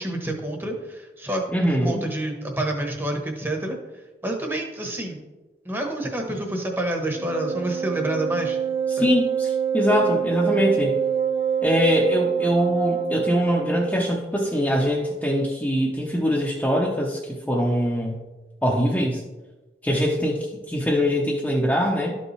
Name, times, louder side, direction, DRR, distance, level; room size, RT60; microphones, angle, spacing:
voice 1, 0.0-3.8 4.2-5.2 5.6-8.6 9.0-9.1, right 1 dB, 10° right, 2 dB, 1.1 m, -28 dB
voice 2, 1.5-2.0 8.9-10.9 11.6-18.2 18.6-19.2 19.8-22.2, equal, 10° left, -3 dB, 0.7 m, -23 dB
Wind instrument woodwind instrument, 7.1-14.2, right 7 dB, 35° right, 0.4 m, -25 dB
12.5 x 5.3 x 3.2 m, 1.2 s
head